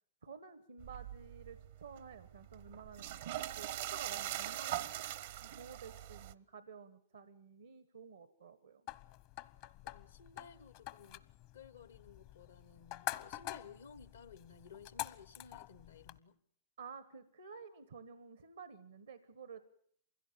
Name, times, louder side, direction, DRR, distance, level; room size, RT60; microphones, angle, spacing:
voice 1, 0.2-3.2 3.6-4.8 5.4-8.9 16.8-19.6, right 6 dB, 85° right, 1.2 m, -52 dB
sound 1, 0.8-6.3, right 12 dB, 70° right, 0.9 m, -42 dB
sound 2, 8.9-16.2, left 15 dB, 60° left, 0.9 m, -47 dB
voice 2, 9.8-11.3 11.5-16.4, left 6 dB, 85° left, 1.1 m, -56 dB
24.0 x 16.5 x 8.7 m
hypercardioid pair, 95°, 0 cm